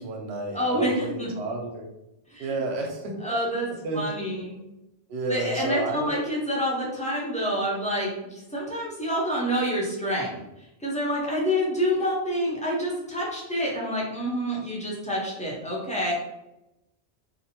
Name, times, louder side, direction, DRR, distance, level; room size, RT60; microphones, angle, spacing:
voice 1, 0.0-1.9 2.4-3.2 3.8-4.1 5.1-6.1, right 2 dB, 85° right, 1 dB, 0.9 m, -31 dB
voice 2, 0.5-1.3 2.3-2.6 3.2-3.7 3.9-4.6 5.3-10.4 10.8-16.1, equal, 10° left, -5 dB, 0.5 m, -27 dB
2.6 x 2.2 x 2.8 m, 0.92 s
omnidirectional pair, 1.1 m